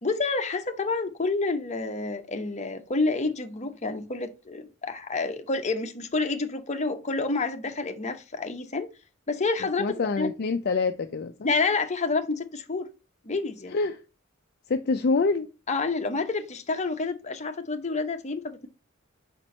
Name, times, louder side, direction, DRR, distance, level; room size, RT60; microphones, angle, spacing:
voice 1, 0.0-8.9 9.3-9.9 10.2-10.3 11.4-12.9 13.2-13.7 15.7-18.7, left 3 dB, 35° left, 0.8 m, -28 dB
voice 2, 9.8-11.5 13.7-14.0 14.7-15.5, left 4 dB, 50° left, 0.4 m, -26 dB
5.1 x 4.5 x 4.3 m
head